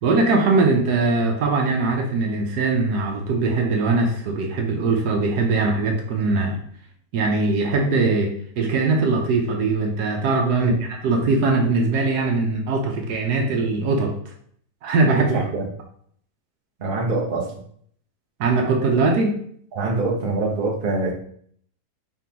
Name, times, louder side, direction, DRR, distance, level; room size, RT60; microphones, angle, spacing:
voice 1, 0.0-6.6 7.1-8.3 8.6-14.1 14.8-15.3 18.4-19.3, right 3 dB, 75° right, 2 dB, 1.3 m, -21 dB
voice 2, 15.1-15.7 16.8-17.5 19.8-21.1, right 3 dB, 40° right, -1 dB, 0.9 m, -24 dB
4.9 x 3.7 x 2.9 m, 0.62 s
omnidirectional pair, 1.7 m